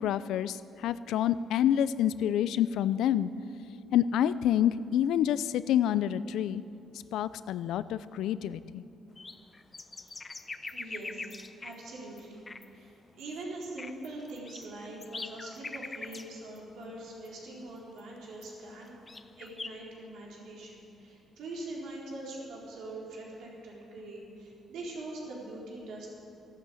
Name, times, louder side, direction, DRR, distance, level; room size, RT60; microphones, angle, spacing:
voice 1, 0.0-3.3 3.9-6.6 7.1-8.8, left 10 dB, 85° left, 15 dB, 0.5 m, -28 dB
sound 1, 9.2-11.8 12.2-12.3 12.5-12.7 13.2-13.3 13.6-16.3 16.6-16.7 17.3-17.4 18.0-18.1 18.4-18.5 18.9-19.7, left 3 dB, 25° left, 0.7 m, -42 dB
voice 2, 9.9-10.2 10.7-12.4 12.7-18.9 19.4-26.1, right 2 dB, 80° right, -3 dB, 4.1 m, -43 dB
14.0 x 12.0 x 7.7 m, 2.6 s
cardioid pair, 95°, 0 cm